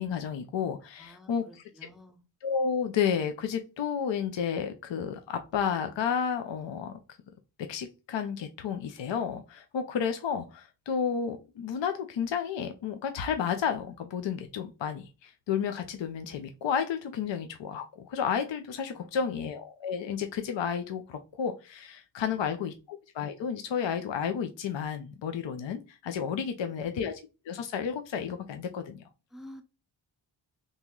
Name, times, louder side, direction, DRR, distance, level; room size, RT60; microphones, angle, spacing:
voice 1, 0.0-1.6 2.4-7.0 7.7-27.2 27.5-29.0, left 7 dB, 65° left, 0.6 m, -32 dB
voice 2, 1.0-2.2 18.9-19.4 22.2-22.5 26.5-26.9 29.3-29.6, left 1 dB, ahead, 0.6 m, -51 dB
3.0 x 2.7 x 3.6 m
cardioid pair, 85°, 48 cm